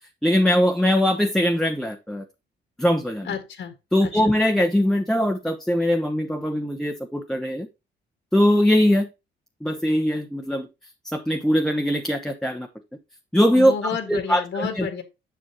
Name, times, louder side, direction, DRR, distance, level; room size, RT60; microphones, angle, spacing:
voice 1, 0.2-2.2 2.8-3.3 3.9-7.7 8.3-9.1 9.6-10.7 11.1-12.7 13.3-13.7 14.1-14.9, equal, ahead, 3 dB, 0.9 m, -21 dB
voice 2, 3.3-3.7 4.0-4.1 13.6-15.0, left 7 dB, 65° left, 7 dB, 1.8 m, -31 dB
7.4 x 6.2 x 2.9 m, 0.25 s
cardioid pair, 90°, 20 cm